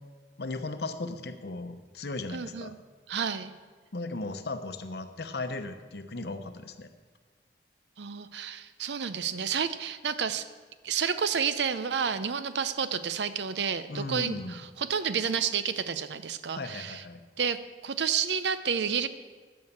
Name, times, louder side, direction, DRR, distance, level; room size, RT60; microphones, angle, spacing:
voice 1, 0.4-2.7 3.9-6.9 13.9-14.5 16.5-17.2, left 2 dB, 65° left, 8 dB, 0.8 m, -36 dB
voice 2, 2.3-2.8 3.1-3.5 8.0-10.4 10.8-17.0 17.4-19.1, right 7 dB, 80° right, 13 dB, 0.6 m, -30 dB
11.0 x 6.5 x 7.2 m, 1.4 s
head